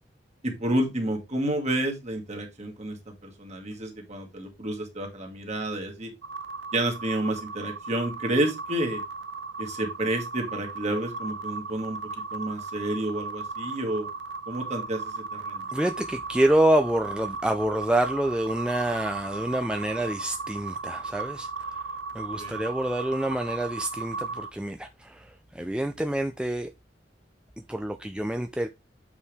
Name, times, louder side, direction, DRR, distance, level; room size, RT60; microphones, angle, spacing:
voice 1, 0.4-6.1 6.7-9.0 9.6-14.1 14.5-15.7 22.4-22.6, right 1 dB, 40° right, 2.1 m, -30 dB
sound 1, 6.2-24.5, right 4 dB, 70° right, 0.6 m, -36 dB
voice 2, 15.7-21.9 22.1-26.7 27.7-28.7, right 1 dB, 5° right, 0.4 m, -27 dB
8.4 x 4.7 x 3.5 m
head